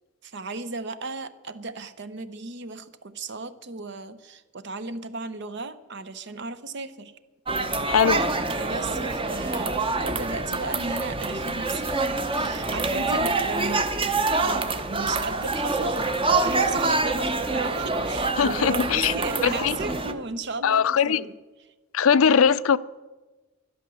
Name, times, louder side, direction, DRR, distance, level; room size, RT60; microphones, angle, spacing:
voice 1, 0.2-7.1 7.9-8.0 8.6-21.4, right 3 dB, 60° right, 0.9 m, -35 dB
sound 1, 7.5-20.1, right 3 dB, 25° right, 0.8 m, -26 dB
voice 2, 7.9-8.3 18.4-19.1 19.4-19.8 20.6-21.2 21.9-22.8, left 7 dB, 85° left, 0.5 m, -20 dB
12.5 x 11.5 x 7.0 m
head